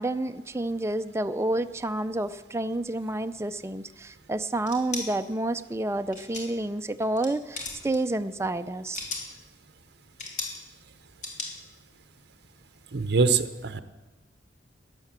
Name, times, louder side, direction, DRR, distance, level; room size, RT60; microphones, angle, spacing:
voice 1, 0.0-9.0, right 2 dB, 15° right, 10 dB, 0.5 m, -29 dB
sound 1, 4.6-5.1 6.1-6.6 7.0-7.3 7.5-8.0 8.7-9.3 10.2-10.6 11.2-11.5, left 3 dB, 45° left, 2.8 m, -35 dB
voice 2, 12.9-13.8, right 4 dB, 65° right, 10 dB, 0.7 m, -23 dB
12.5 x 10.5 x 7.5 m, 1.2 s
head